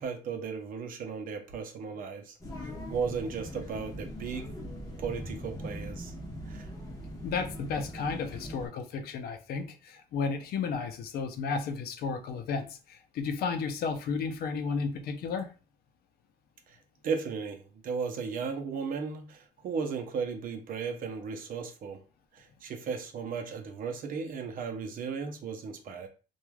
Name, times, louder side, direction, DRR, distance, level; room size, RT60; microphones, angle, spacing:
voice 1, 0.0-4.5 5.0-6.1 6.5-6.7 16.7-16.8 17.0-22.0 22.3-26.1, right 5 dB, 55° right, 0.6 m, -35 dB
sound 1, 2.4-8.7, equal, 20° left, 0.9 m, -41 dB
voice 2, 7.2-15.5, left 5 dB, 65° left, 0.5 m, -33 dB
3.1 x 2.3 x 2.3 m
cardioid pair, 110°, 17 cm